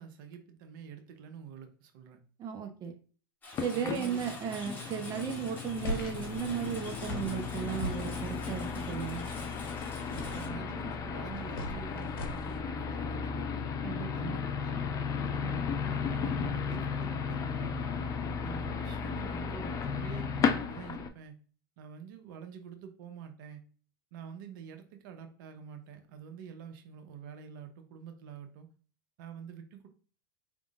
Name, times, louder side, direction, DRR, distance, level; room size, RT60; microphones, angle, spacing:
voice 1, 0.0-2.2 3.7-4.3 10.1-13.7 14.1-14.8 15.2-17.9 18.4-21.4 21.8-23.6 24.1-28.7 29.2-29.9, right 7 dB, 65° right, 7 dB, 0.8 m, -47 dB
voice 2, 2.4-2.9 3.6-9.2 13.8-14.4, right 8 dB, 30° right, 4 dB, 0.8 m, -35 dB
Engine, 3.4-10.5, left 2 dB, 15° left, 2.2 m, -47 dB
sound 1, 3.5-21.1, left 6 dB, 30° left, 0.6 m, -35 dB
sound 2, 5.8-12.6, left 1 dB, 80° left, 1.2 m, -42 dB
4.9 x 3.6 x 2.4 m, 0.40 s
hypercardioid pair, 105°, 12 cm